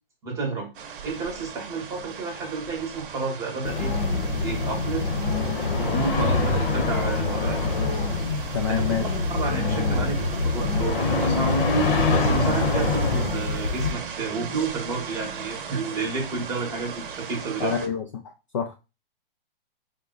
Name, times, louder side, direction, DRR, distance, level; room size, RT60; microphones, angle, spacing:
voice 1, 0.2-0.7 1.0-3.9 4.4-5.1 5.7-7.6 8.7-9.1 9.3-10.3 10.5-11.7 12.1-17.7, right 4 dB, 10° right, 0 dB, 0.9 m, -30 dB
sound 1, 0.7-17.9, right 7 dB, 60° right, 0.8 m, -38 dB
sound 2, 3.6-13.9, left 3 dB, 70° left, 1.0 m, -24 dB
voice 2, 8.5-9.1 17.6-18.8, left 7 dB, 35° left, 3 dB, 0.4 m, -28 dB
4.8 x 2.2 x 3.7 m, 0.28 s
hypercardioid pair, 160°, 29 cm